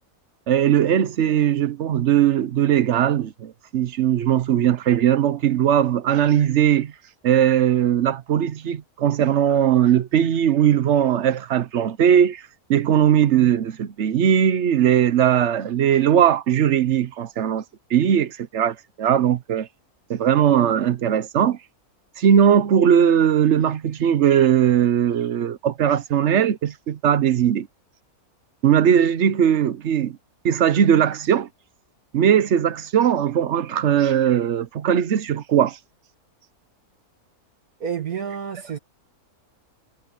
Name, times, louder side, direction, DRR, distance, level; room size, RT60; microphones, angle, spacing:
voice 1, 0.5-6.9 7.2-12.4 12.7-17.6 17.9-19.7 20.1-21.6 22.2-27.7 28.6-30.2 30.4-31.5 32.1-35.8, right 9 dB, 55° right, 1.0 m, -19 dB
voice 2, 37.8-38.8, right 7 dB, 75° right, 2.3 m, -29 dB
omnidirectional pair, 1.6 m